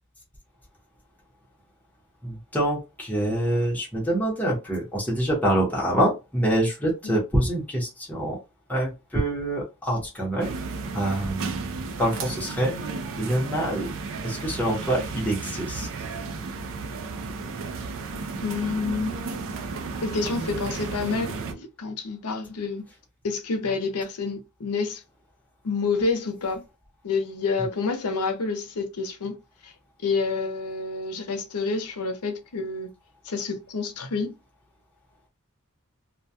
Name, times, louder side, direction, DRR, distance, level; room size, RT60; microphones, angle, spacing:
voice 1, 2.2-8.4 8.7-10.5 10.9-12.7 13.2-13.9 14.2-15.9, right 1 dB, 5° left, 0.8 m, -26 dB
sound 1, 10.4-21.5, right 4 dB, 60° right, 0.4 m, -33 dB
voice 2, 18.4-19.2 20.0-22.8 23.2-25.0 25.6-26.6 27.0-29.4 29.6-29.7 30.0-32.9 33.2-34.4, left 4 dB, 80° left, 0.6 m, -28 dB
2.3 x 2.1 x 2.7 m
head